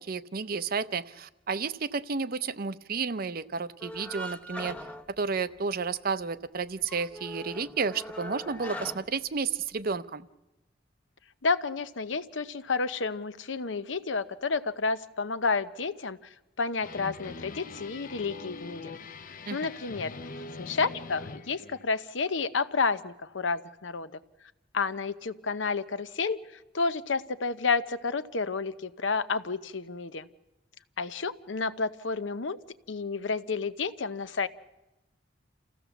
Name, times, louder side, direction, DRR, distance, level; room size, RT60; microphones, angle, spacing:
voice 1, 0.0-4.8 5.2-10.2 19.5-19.7, right 5 dB, 50° right, 14 dB, 0.6 m, -32 dB
sound 1, 3.8-5.9 6.2-6.3 6.7-9.9, equal, 5° left, 0.7 m, -41 dB
voice 2, 11.4-19.0 19.5-20.1 20.6-24.2 24.7-30.3 31.0-32.6 32.9-34.5, left 4 dB, 80° left, 13 dB, 0.8 m, -30 dB
sound 2, 16.8-21.8, left 3 dB, 45° left, 0.7 m, -43 dB
28.0 x 15.5 x 7.1 m, 1.0 s
head